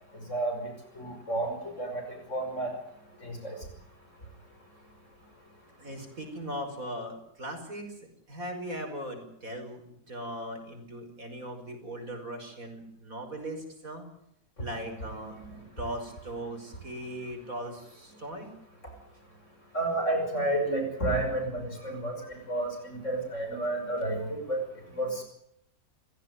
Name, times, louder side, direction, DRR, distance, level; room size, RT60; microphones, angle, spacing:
voice 1, 1.0-2.0 2.3-2.7 3.2-3.6 19.7-22.1 22.5-24.6 25.0-25.2, right 1 dB, 45° left, 4 dB, 6.2 m, -30 dB
voice 2, 5.8-8.0 8.3-14.0 14.6-18.5, equal, 55° right, 6 dB, 6.0 m, -39 dB
29.5 x 16.0 x 9.6 m, 0.76 s
omnidirectional pair, 1.7 m